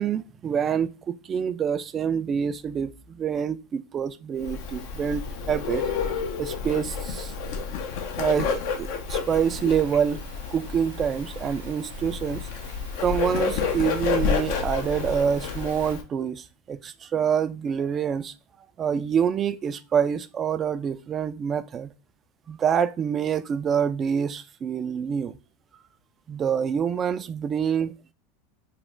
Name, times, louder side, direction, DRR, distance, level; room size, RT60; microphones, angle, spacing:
voice 1, 0.0-5.9 6.4-7.3 8.2-10.2 10.5-12.5 13.0-18.3 18.8-21.9 22.5-25.4 26.3-27.9, right 7 dB, 30° right, 0.3 m, -26 dB
Bird, 4.4-16.0, left 6 dB, 65° left, 0.6 m, -30 dB
sound 1, 9.2-16.0, right 6 dB, 80° right, 0.7 m, -48 dB
3.1 x 2.1 x 3.7 m
hypercardioid pair, 110°, 0 cm